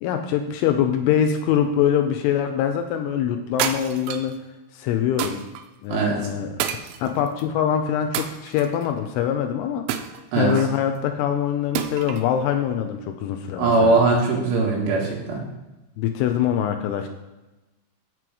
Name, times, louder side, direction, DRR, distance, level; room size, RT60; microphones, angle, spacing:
voice 1, 0.0-4.3 4.7-5.4 5.8-6.5 7.0-9.8 10.4-14.0 16.0-17.1, left 9 dB, 85° left, 6 dB, 2.9 m, -23 dB
sound 1, 3.6-4.4 5.2-5.6 6.6-7.4 8.1-8.9 9.9-10.8 11.8-12.3, right 10 dB, 80° right, 2.6 m, -29 dB
voice 2, 13.6-15.4, right 3 dB, 65° right, -3 dB, 3.3 m, -20 dB
7.7 x 7.6 x 4.8 m, 1.0 s
omnidirectional pair, 5.8 m